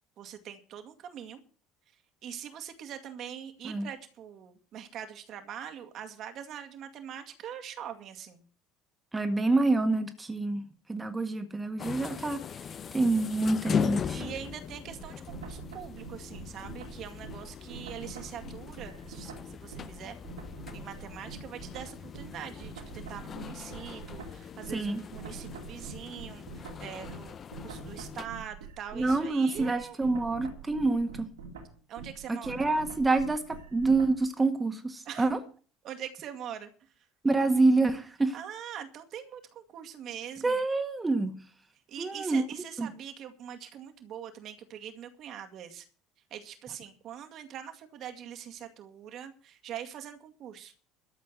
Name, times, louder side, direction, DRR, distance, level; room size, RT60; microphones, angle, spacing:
voice 1, 0.2-1.4 2.2-8.4 14.1-20.2 20.7-30.0 31.9-32.7 35.0-35.3 35.8-36.7 38.3-40.6 41.9-45.9 46.3-50.7, right 9 dB, 50° right, 2.1 m, -43 dB
voice 2, 9.1-10.6 10.9-12.4 12.9-14.2 24.7-25.0 28.9-31.2 32.3-35.4 37.2-38.3 40.4-41.3 42.0-42.4 42.8-42.9, right 3 dB, 15° right, 1.7 m, -27 dB
sound 1, 11.8-28.3, left 7 dB, 40° left, 0.8 m, -40 dB
sound 2, 14.8-20.0 20.2-34.2, right 5 dB, 80° right, 3.0 m, -45 dB
13.0 x 7.4 x 7.8 m
figure-of-eight pair, 65°, 0 cm